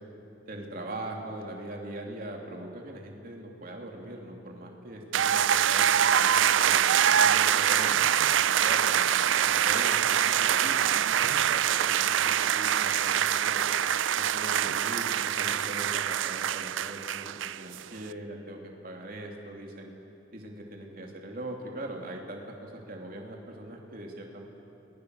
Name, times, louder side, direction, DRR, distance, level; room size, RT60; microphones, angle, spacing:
voice 1, 0.5-7.9 8.6-13.6 14.2-19.9 20.3-24.4, right 1 dB, 50° right, 0 dB, 3.1 m, -41 dB
sound 1, 5.1-17.8, right 9 dB, 80° right, 0.5 m, -24 dB
29.0 x 21.0 x 6.6 m, 2.8 s
head